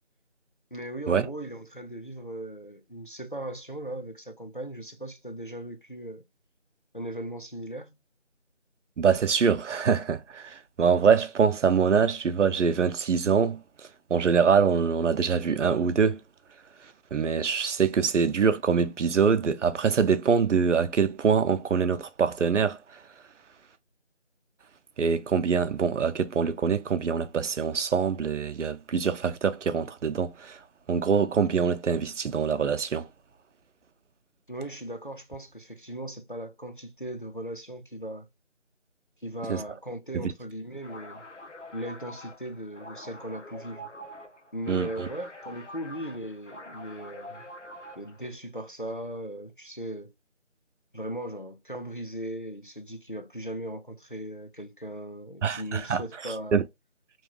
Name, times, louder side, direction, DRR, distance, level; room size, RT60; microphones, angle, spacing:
voice 1, 0.7-6.2 6.9-8.0 34.5-38.3 39.2-41.2 41.7-43.9 44.5-47.5 48.0-50.1 50.9-56.6, right 1 dB, 45° left, 0.4 m, -38 dB
voice 2, 9.0-16.2 17.1-23.0 25.0-30.6 30.9-33.1 39.5-39.6 40.1-40.3 44.7-45.1 55.4-56.0 56.5-56.6, right 6 dB, 85° right, 0.5 m, -24 dB
sound 1, 40.8-48.2, left 1 dB, 85° left, 0.9 m, -45 dB
3.0 x 2.3 x 2.8 m
figure-of-eight pair, 175°, 35 cm